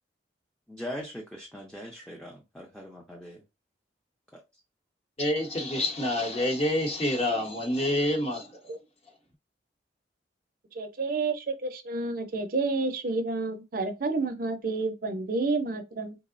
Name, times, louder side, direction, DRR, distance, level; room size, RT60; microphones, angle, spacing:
voice 1, 0.7-3.4 4.3-4.4, equal, 5° left, 0.4 m, -41 dB
voice 2, 5.2-8.5, left 1 dB, 35° left, 0.8 m, -27 dB
voice 3, 10.7-16.2, right 3 dB, 50° right, 0.5 m, -30 dB
3.5 x 2.0 x 2.4 m
head